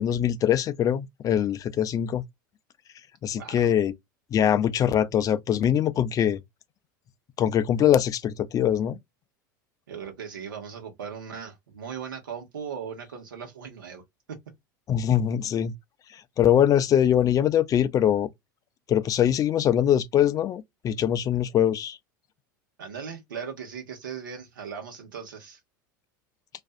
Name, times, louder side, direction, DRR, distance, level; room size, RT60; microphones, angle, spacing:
voice 1, 0.0-2.2 3.2-3.9 4.3-6.4 7.4-9.0 14.9-15.7 16.1-18.3 18.9-22.0, left 10 dB, 35° left, 0.4 m, -23 dB
voice 2, 3.3-3.7 9.9-14.0 14.3-14.4 22.8-25.6, right 7 dB, 85° right, 0.9 m, -38 dB
2.5 x 2.4 x 2.3 m
hypercardioid pair, 85°, 11 cm